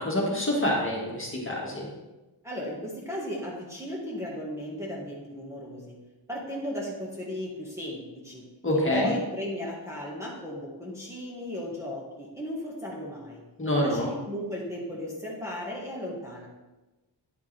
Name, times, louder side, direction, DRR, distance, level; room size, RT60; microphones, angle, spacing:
voice 1, 0.0-1.9 8.6-9.1 13.6-14.1, left 1 dB, 30° left, -3 dB, 1.8 m, -26 dB
voice 2, 2.4-6.0 6.3-8.4 8.9-13.4 13.8-16.5, equal, 5° right, -5 dB, 1.6 m, -35 dB
9.6 x 6.7 x 3.4 m, 1.1 s
wide cardioid pair, 135°, 43 cm